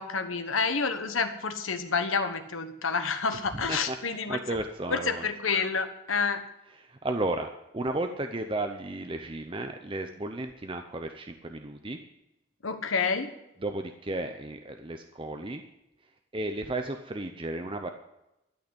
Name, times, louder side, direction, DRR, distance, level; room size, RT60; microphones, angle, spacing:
voice 1, 0.0-4.4 4.9-6.4 12.6-13.3, left 5 dB, 85° left, 8 dB, 1.3 m, -29 dB
voice 2, 3.5-5.3 6.8-7.5 7.7-12.0 13.6-15.6 16.3-17.9, right 2 dB, 25° right, 6 dB, 0.7 m, -34 dB
12.5 x 6.4 x 9.8 m, 0.91 s
head